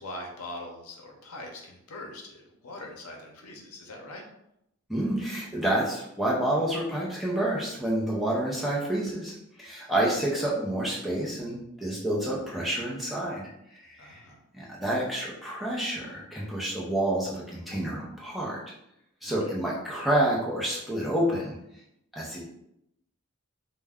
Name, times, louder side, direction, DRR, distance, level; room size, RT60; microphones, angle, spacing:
voice 1, 0.0-4.2 14.0-14.4 19.2-19.6, left 1 dB, 85° left, 1 dB, 0.6 m, -42 dB
voice 2, 4.9-13.5 13.8-14.2 14.5-18.6 19.2-21.6 22.1-22.4, right 1 dB, ahead, -5 dB, 0.5 m, -29 dB
2.3 x 2.1 x 3.4 m, 0.80 s
head